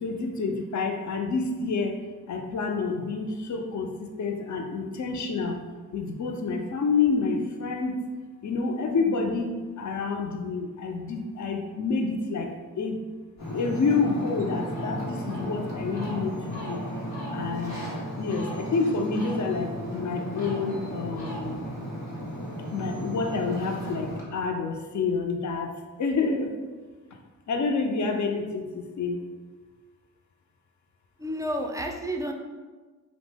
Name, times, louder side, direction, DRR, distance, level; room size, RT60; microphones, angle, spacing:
voice 1, 0.0-2.0 2.3-5.6 5.9-8.0 8.4-9.5 9.8-13.0 13.5-16.8 17.3-17.8 18.2-21.6 22.7-25.7 26.0-26.5 27.5-29.2, left 4 dB, 50° left, 4 dB, 0.5 m, -28 dB
Ocean, 13.4-24.2, equal, 85° left, 0.9 m, -34 dB
voice 2, 31.2-32.3, equal, 10° right, 2 dB, 0.3 m, -30 dB
2.8 x 2.0 x 3.3 m, 1.4 s
supercardioid pair, 45°, 37 cm